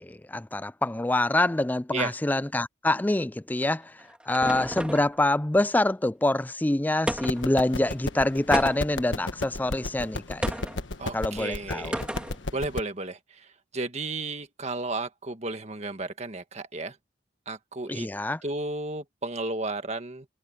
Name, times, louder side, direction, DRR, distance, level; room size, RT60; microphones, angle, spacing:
voice 1, 0.0-10.6 11.1-12.0 17.9-18.4, left 1 dB, 10° left, 0.4 m, -26 dB
sound 1, 3.6-5.2 7.1-7.6 8.5-9.1 10.4-10.8 11.9-12.4, equal, 5° right, 2.5 m, -32 dB
sound 2, 7.2-12.8, left 2 dB, 80° left, 1.4 m, -34 dB
voice 2, 11.0-12.0 12.5-17.0 17.5-18.1 18.4-20.3, right 2 dB, 35° right, 1.7 m, -33 dB
head